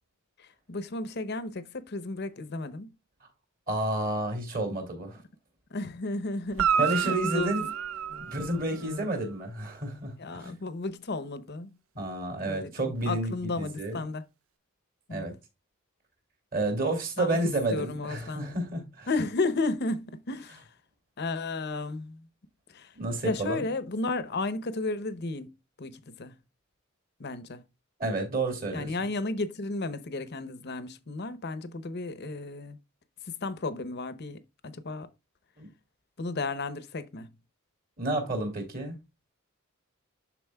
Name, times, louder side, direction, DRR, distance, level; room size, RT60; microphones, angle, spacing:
voice 1, 0.4-2.9 5.7-7.7 8.1-8.3 8.7-9.1 10.2-11.8 12.5-14.2 15.1-15.3 17.2-17.4 17.7-18.5 19.1-20.7 21.2-22.3 22.7-23.0 23.2-26.4 27.2-27.6 28.7-32.8 33.2-35.1 36.2-37.3, left 3 dB, 50° left, 0.8 m, -33 dB
voice 2, 3.7-5.2 6.8-7.6 8.2-10.5 11.9-14.0 15.1-15.3 16.5-19.1 23.0-23.7 28.0-28.9 35.6-35.7 38.0-39.0, right 2 dB, 40° right, 2.5 m, -30 dB
Guitar, 6.5-9.1 13.0-13.1, right 7 dB, 65° right, 0.5 m, -29 dB
12.0 x 4.2 x 2.3 m
head